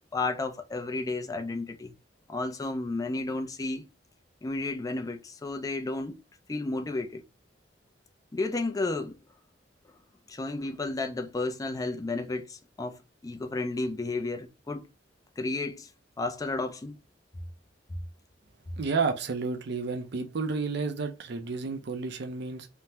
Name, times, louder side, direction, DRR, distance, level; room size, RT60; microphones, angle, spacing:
voice 1, 0.1-1.9 2.3-3.8 4.4-6.2 6.5-7.2 8.3-9.2 10.3-14.8 15.4-15.9 16.2-17.0, left 2 dB, 20° left, 0.4 m, -32 dB
voice 2, 18.8-22.7, right 4 dB, 65° right, 0.5 m, -31 dB
3.4 x 2.1 x 2.8 m
head